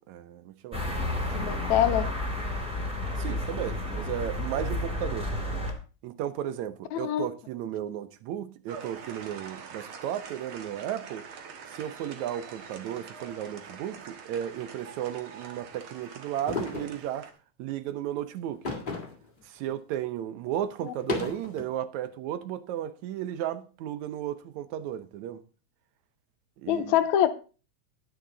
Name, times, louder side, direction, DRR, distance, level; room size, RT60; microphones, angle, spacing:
voice 1, 0.1-0.8 3.2-5.3 6.0-11.2 11.7-17.3 17.6-18.6 19.5-25.4 26.6-27.0, right 11 dB, 75° right, 2.1 m, -34 dB
sound 1, 0.7-5.7, left 1 dB, ahead, 2.5 m, -31 dB
voice 2, 1.3-2.1 6.9-7.3 20.8-20.9 26.7-27.3, left 11 dB, 80° left, 2.1 m, -24 dB
sound 2, 8.7-17.3, right 6 dB, 55° right, 1.9 m, -45 dB
sound 3, 16.5-17.0 18.6-19.3 19.7-19.8 20.9-21.6, left 4 dB, 20° left, 1.7 m, -33 dB
10.0 x 9.8 x 3.9 m
omnidirectional pair, 3.4 m